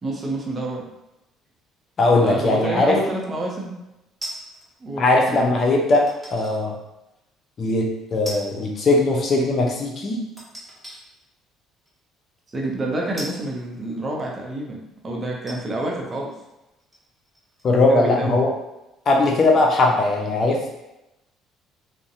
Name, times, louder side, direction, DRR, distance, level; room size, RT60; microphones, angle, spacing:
voice 1, 0.0-0.8 2.2-3.8 4.8-5.4 12.5-16.3 17.9-18.4, right 2 dB, 30° right, -2 dB, 0.7 m, -28 dB
voice 2, 2.0-3.0 5.0-6.7 7.6-10.2 17.6-18.5 19.1-20.7, left 2 dB, 45° left, 0 dB, 0.6 m, -19 dB
sound 1, 4.2-4.7 6.1-6.6 7.1-7.2 8.2-8.7 9.0-9.1 10.4-11.0 11.8-12.0 13.2-14.3 14.9-15.0 15.4-17.9 18.1-18.2, right 1 dB, 5° right, 1.1 m, -38 dB
2.6 x 2.1 x 2.6 m, 0.94 s
supercardioid pair, 75°, 0 cm